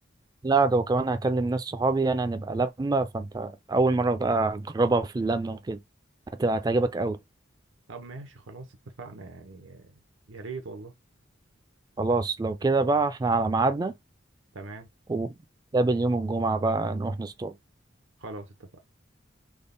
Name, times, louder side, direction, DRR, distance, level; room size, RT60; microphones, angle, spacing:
voice 1, 0.4-5.8 6.4-7.2 12.0-13.9 15.1-15.3 15.7-17.5, right 3 dB, 20° right, 0.3 m, -25 dB
voice 2, 7.9-9.9 10.3-10.9 14.5-14.9 18.2-18.7, right 3 dB, 85° right, 0.7 m, -41 dB
3.6 x 2.1 x 3.8 m
head